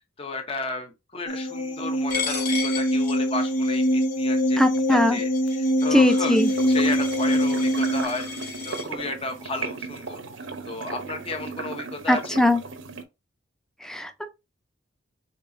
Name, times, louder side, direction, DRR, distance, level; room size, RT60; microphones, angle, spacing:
voice 1, 0.2-10.2 10.7-12.4, left 3 dB, 30° left, 0.8 m, -33 dB
sound 1, 1.3-8.0, equal, 70° left, 0.7 m, -23 dB
Coin (dropping), 2.1-8.8, left 4 dB, 55° left, 2.8 m, -35 dB
voice 2, 4.6-5.2 5.9-6.5 12.1-12.6 13.8-14.3, left 1 dB, 5° left, 0.6 m, -21 dB
sound 2, 6.4-13.0, right 3 dB, 80° right, 0.9 m, -36 dB
5.3 x 3.8 x 2.6 m
head